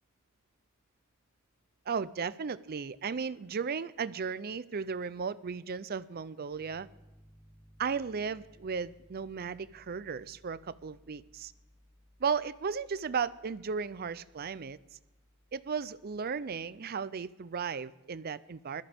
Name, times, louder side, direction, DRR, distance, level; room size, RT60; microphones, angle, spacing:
voice 1, 1.9-6.9 7.8-11.5 12.2-14.8 15.5-18.8, right 6 dB, 45° right, 16 dB, 0.5 m, -35 dB
Piano, 6.5-16.8, equal, 10° left, 1.7 m, -62 dB
21.0 x 14.0 x 3.5 m, 1.1 s
head